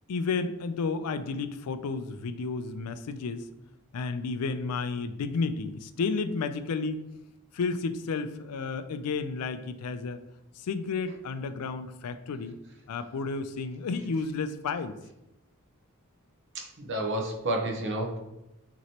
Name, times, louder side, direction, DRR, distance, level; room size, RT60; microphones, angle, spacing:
voice 1, 0.1-3.5 3.9-7.0 7.5-10.2 10.6-12.5 12.9-14.9, left 4 dB, 85° left, 11 dB, 0.4 m, -32 dB
voice 2, 16.5-18.2, right 1 dB, 55° right, 1 dB, 0.9 m, -30 dB
5.9 x 3.0 x 2.9 m, 0.92 s
head